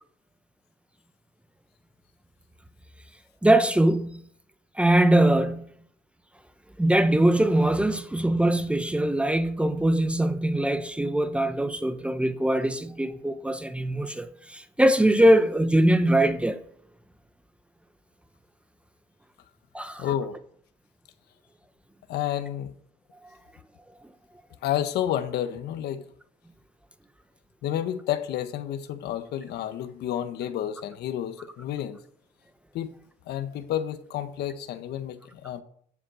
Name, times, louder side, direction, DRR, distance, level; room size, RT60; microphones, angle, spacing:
voice 1, 3.4-4.2 4.8-5.6 6.8-16.6 19.7-20.0, right 1 dB, 5° right, 0.9 m, -22 dB
voice 2, 20.0-20.4 22.1-22.7 24.6-26.0 27.6-32.0 32.7-32.9 33.3-35.6, left 11 dB, 75° left, 1.4 m, -30 dB
14.5 x 7.6 x 5.7 m
cardioid pair, 110°, 17 cm